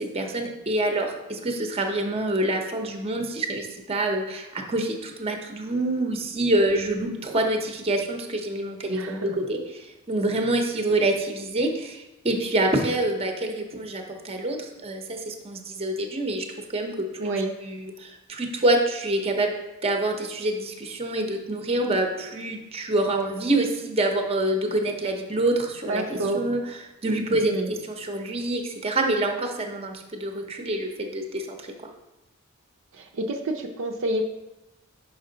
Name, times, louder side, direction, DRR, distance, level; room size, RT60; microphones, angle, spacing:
voice 1, 0.0-16.4 16.7-17.1 17.6-31.7, right 1 dB, 30° right, 3 dB, 0.7 m, -26 dB
voice 2, 8.9-9.3 17.2-17.5 25.9-26.4 27.3-27.7 32.9-34.2, right 2 dB, 65° right, 2 dB, 0.6 m, -28 dB
5.8 x 5.4 x 3.9 m, 0.96 s
head